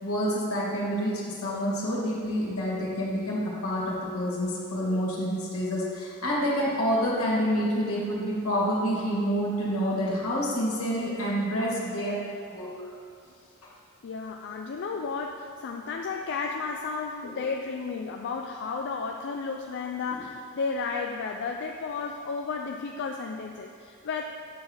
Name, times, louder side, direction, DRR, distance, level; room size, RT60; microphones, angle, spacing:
voice 1, 0.0-12.2 12.5-12.9 17.2-17.3 20.1-20.2, equal, 75° left, -5 dB, 1.9 m, -28 dB
voice 2, 14.0-24.2, left 4 dB, 55° left, 2 dB, 0.4 m, -33 dB
8.2 x 4.0 x 6.2 m, 2.4 s
head